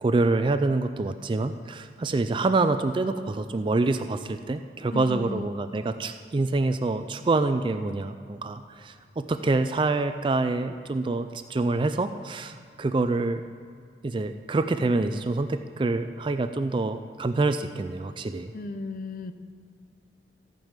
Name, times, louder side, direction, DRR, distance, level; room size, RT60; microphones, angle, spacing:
voice 1, 0.0-13.4 14.0-18.5, right 3 dB, 30° right, 9 dB, 0.3 m, -26 dB
voice 2, 4.9-5.6 18.5-19.3, left 2 dB, 50° left, 10 dB, 0.6 m, -34 dB
14.5 x 5.3 x 7.3 m, 2.3 s
head